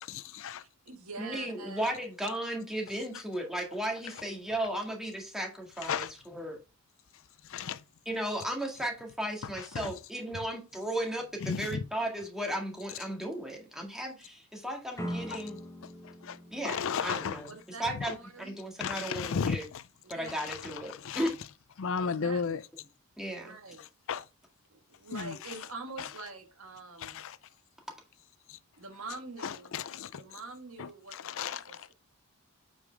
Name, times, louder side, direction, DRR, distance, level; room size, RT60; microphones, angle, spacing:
voice 1, 0.0-0.6 5.8-6.1 7.5-7.8 9.6-9.9 11.4-11.8 15.3-15.4 16.0-16.4 16.6-17.4 18.8-19.8 20.4-21.3 21.8-22.6 24.1-24.2 25.1-25.3 26.0-26.1 27.0-27.4 28.5-28.6 29.4-30.2 30.8-31.8, left 6 dB, 65° left, 0.5 m, -34 dB
voice 2, 0.6-1.8 17.5-18.5 20.0-20.6 21.8-22.4 23.4-23.8 25.0-27.2 28.8-29.8 30.1-31.9, right 3 dB, 70° right, 1.5 m, -45 dB
voice 3, 1.2-6.5 8.1-15.6 16.5-17.5 17.8-19.6 20.1-21.4 23.2-23.5, right 1 dB, ahead, 1.9 m, -35 dB
sound 1, 15.0-17.9, equal, 15° left, 1.3 m, -41 dB
8.2 x 5.4 x 3.4 m
head